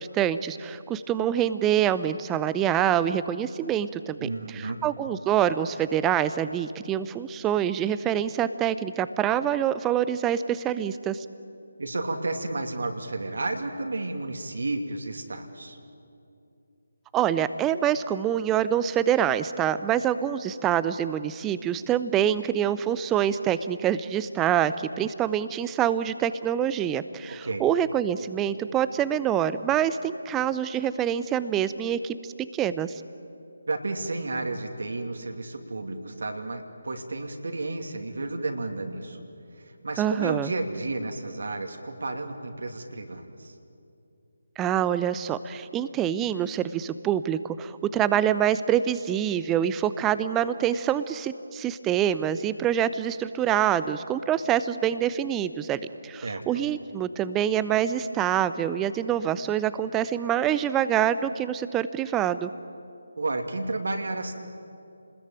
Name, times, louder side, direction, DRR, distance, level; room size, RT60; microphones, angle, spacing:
voice 1, 0.0-11.2 17.1-33.0 40.0-40.5 44.6-62.5, right 10 dB, 10° right, 14 dB, 0.6 m, -26 dB
voice 2, 4.2-4.9 11.8-15.8 27.4-27.6 33.7-39.2 39.6-43.5 56.2-56.6 63.2-64.3, right 2 dB, 60° right, 3 dB, 2.8 m, -32 dB
29.5 x 20.5 x 8.9 m, 2.7 s
figure-of-eight pair, 150°, 0 cm